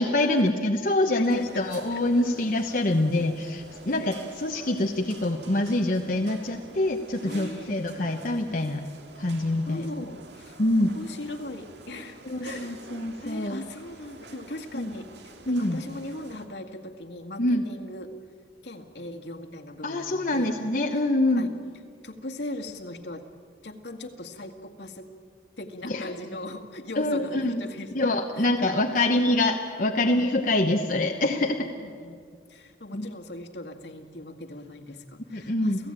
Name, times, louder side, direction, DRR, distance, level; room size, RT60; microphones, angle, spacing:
voice 1, 0.0-8.9 9.2-10.1 10.6-10.9 12.2-13.6 14.7-14.9 15.5-15.8 17.4-17.6 19.8-21.5 25.8-26.2 26.9-27.6 27.9-31.7 32.9-33.1 35.3-35.8, left 1 dB, 50° left, 3 dB, 1.1 m, -25 dB
voice 2, 1.1-1.6 1.9-2.0 3.2-3.5 3.9-4.1 7.3-7.8 9.7-10.6 10.9-12.8 13.2-15.1 15.5-18.1 18.6-20.5 21.3-21.5 22.0-23.3 23.6-25.1 25.6-28.0 28.4-29.3 29.9-30.0 31.8-35.9, left 1 dB, 70° left, 3 dB, 2.0 m, -39 dB
sound 1, 1.3-16.5, right 3 dB, 70° right, 2.2 m, -47 dB
29.0 x 16.5 x 8.9 m, 2.2 s
head